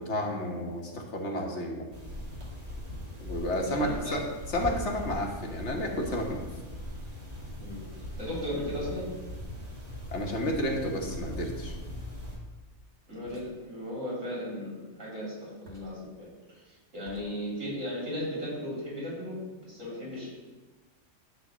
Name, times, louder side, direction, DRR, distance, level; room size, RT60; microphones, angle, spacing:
voice 1, 0.0-1.9 3.2-4.2 4.5-6.5 10.1-11.7, left 1 dB, 65° left, 1 dB, 1.8 m, -31 dB
sound 1, 1.9-12.3, equal, 40° right, 2.9 m, -40 dB
sound 2, 2.4-2.8 4.6-5.0 6.0-7.2 8.9-9.5 11.3-11.6 13.3-13.6 15.6-16.1 17.0-17.3, right 1 dB, 60° right, 2.0 m, -45 dB
voice 2, 3.6-4.2 7.6-7.8 8.2-9.2 13.1-19.4 19.6-20.3, equal, 85° right, -5 dB, 4.2 m, -36 dB
12.0 x 4.1 x 7.4 m, 1.2 s
omnidirectional pair, 1.3 m